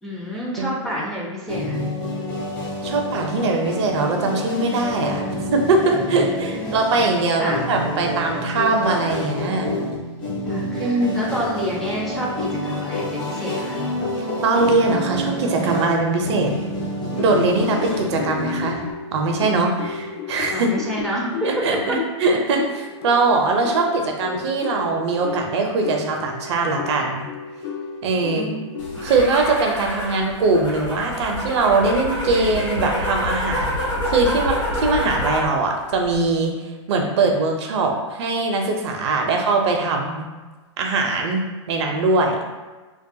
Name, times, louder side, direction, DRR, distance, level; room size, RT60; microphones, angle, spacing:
voice 1, 0.0-1.8 2.8-3.0 6.2-6.8 7.4-7.6 10.5-13.8 14.1-14.2 20.5-21.6 21.9-22.0 28.3-28.6 39.2-39.3, equal, ahead, -5 dB, 0.4 m, -29 dB
sound 1, 1.5-18.9, equal, 30° left, 0.9 m, -28 dB
voice 2, 2.8-5.2 5.5-9.7 10.8-11.2 14.2-16.5 17.2-18.8 19.1-20.7 21.4-27.2 28.0-28.5 29.0-36.5 36.9-40.2 40.8-41.4 41.7-42.4, right 3 dB, 65° right, 2 dB, 0.5 m, -21 dB
sound 2, 17.1-30.1, left 5 dB, 60° left, 0.4 m, -34 dB
sound 3, 28.8-35.5 35.9-36.4, equal, 90° left, 1.2 m, -27 dB
2.4 x 2.2 x 2.6 m, 1.3 s
hypercardioid pair, 125°, 16 cm